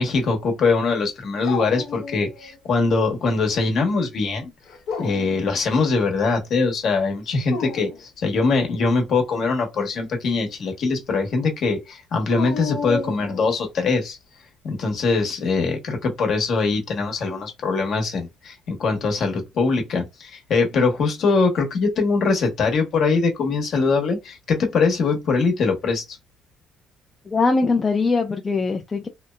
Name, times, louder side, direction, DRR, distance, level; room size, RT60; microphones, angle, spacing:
voice 1, 0.0-4.5 5.0-14.2 14.6-26.0, left 4 dB, 55° left, 1.0 m, -22 dB
Dog, 1.4-2.6 2.9-3.6 4.7-5.4 7.3-8.0 12.3-13.6, left 5 dB, 75° left, 0.7 m, -32 dB
voice 2, 27.3-29.1, left 3 dB, 25° left, 0.3 m, -21 dB
2.8 x 2.0 x 2.2 m
cardioid pair, 125°, 0 cm